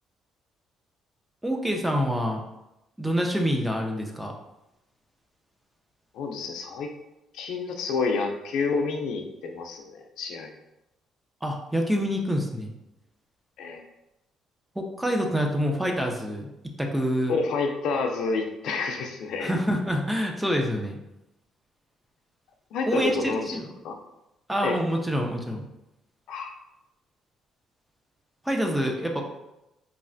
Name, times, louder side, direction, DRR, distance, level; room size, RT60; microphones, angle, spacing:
voice 1, 1.4-2.4 3.0-4.3 11.4-12.7 14.8-16.5 16.8-17.4 19.4-21.0 22.9-23.7 24.5-25.6 28.4-29.2, equal, 5° right, 2 dB, 0.3 m, -26 dB
voice 2, 6.1-6.9 7.3-10.5 13.6-13.8 17.3-19.5 22.7-23.6 23.8-24.0 24.6-24.7 26.3-26.5, left 4 dB, 70° left, 3 dB, 0.4 m, -29 dB
3.1 x 2.4 x 2.5 m, 0.91 s
cardioid pair, 160°, 0 cm